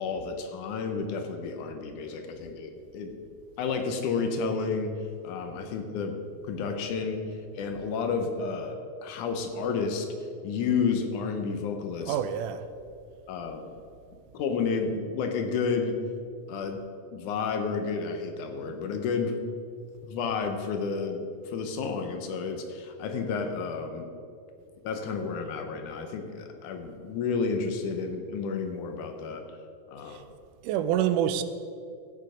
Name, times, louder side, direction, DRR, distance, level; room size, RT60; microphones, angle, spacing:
voice 1, 0.0-3.2 3.6-4.9 5.2-6.2 6.4-7.2 7.5-10.1 10.4-12.2 13.3-13.7 14.3-16.0 16.5-16.8 17.1-19.4 20.0-24.1 24.8-29.4 29.9-30.2, left 5 dB, 75° left, 5 dB, 2.4 m, -31 dB
voice 2, 12.0-12.6 30.1-30.2 30.6-31.4, right 10 dB, 85° right, 11 dB, 2.1 m, -27 dB
15.0 x 6.4 x 5.0 m, 2.4 s
omnidirectional pair, 3.6 m